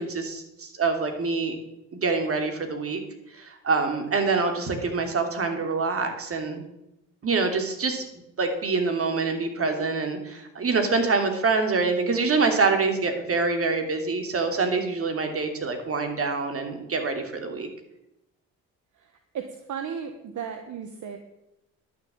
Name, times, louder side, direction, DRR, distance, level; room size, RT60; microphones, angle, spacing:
voice 1, 0.0-1.6 1.9-3.0 3.3-6.6 7.2-8.0 8.4-17.7, right 4 dB, 40° right, 5 dB, 2.9 m, -25 dB
voice 2, 19.0-21.2, right 7 dB, 60° right, 6 dB, 1.4 m, -35 dB
11.0 x 7.0 x 8.7 m, 0.89 s
supercardioid pair, 60°, 34 cm